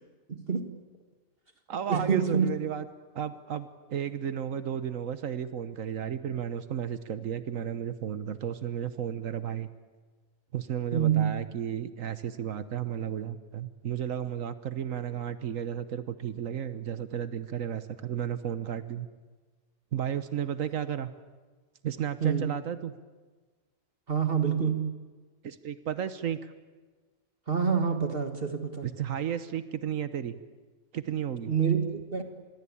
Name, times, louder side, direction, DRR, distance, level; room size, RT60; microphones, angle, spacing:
voice 1, 0.3-0.6 1.9-2.5 10.9-11.3 22.2-22.5 24.1-24.8 27.5-28.9 31.5-32.2, right 7 dB, 45° right, 6 dB, 1.9 m, -26 dB
voice 2, 1.7-2.8 3.1-9.7 10.5-19.1 19.9-21.1 21.8-22.9 25.4-26.5 28.8-30.4 30.9-31.5, right 9 dB, 80° right, 12 dB, 1.4 m, -33 dB
26.5 x 22.0 x 8.6 m, 1.3 s
omnidirectional pair, 1.4 m